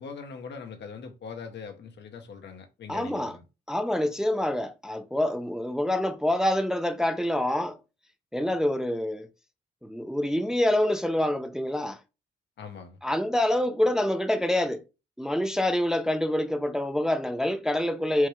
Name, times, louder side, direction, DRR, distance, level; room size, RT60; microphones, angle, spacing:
voice 1, 0.0-3.4 12.6-13.0, left 5 dB, 70° left, 0.8 m, -41 dB
voice 2, 2.9-3.4 3.7-7.8 8.3-9.3 9.8-12.0 13.0-14.8 15.2-18.3, left 1 dB, 5° right, 0.4 m, -26 dB
4.4 x 2.2 x 3.1 m
supercardioid pair, 55°, 19 cm